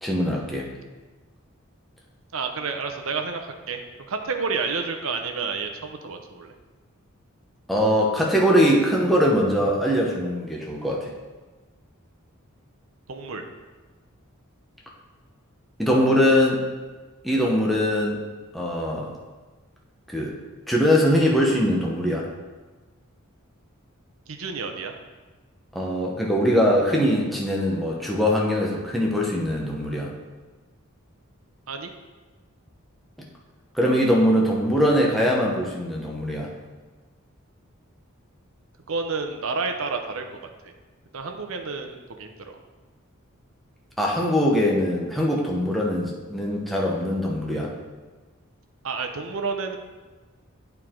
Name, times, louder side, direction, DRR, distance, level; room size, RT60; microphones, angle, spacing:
voice 1, 0.0-0.7 7.7-11.1 15.8-16.6 17.2-18.2 18.5-19.1 20.1-20.4 20.7-22.3 25.7-30.1 33.7-36.5 44.0-47.7, equal, ahead, -3 dB, 1.0 m, -22 dB
voice 2, 2.3-3.8 4.1-6.5 13.1-13.4 24.3-25.0 31.7-31.9 38.9-40.2 40.6-40.7 41.1-42.5 48.8-49.8, right 4 dB, 70° right, 5 dB, 0.7 m, -30 dB
8.9 x 4.6 x 3.7 m, 1.3 s
head